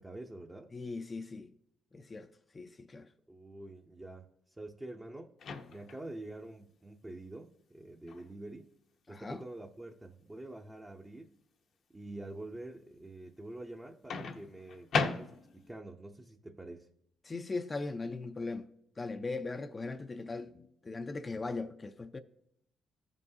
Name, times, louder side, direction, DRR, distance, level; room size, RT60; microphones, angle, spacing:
voice 1, 0.0-0.7 3.3-5.3 5.7-8.7 9.1-11.3 11.9-16.9, right 2 dB, 15° right, 0.7 m, -46 dB
voice 2, 0.7-1.5 1.9-3.1 9.1-9.4 17.2-18.7 19.0-22.2, left 3 dB, 30° left, 0.4 m, -39 dB
Microwave oven, 5.4-6.1 8.1-8.3 14.1-15.7, left 5 dB, 65° left, 0.7 m, -35 dB
15.5 x 5.4 x 2.8 m
cardioid pair, 90°, 0 cm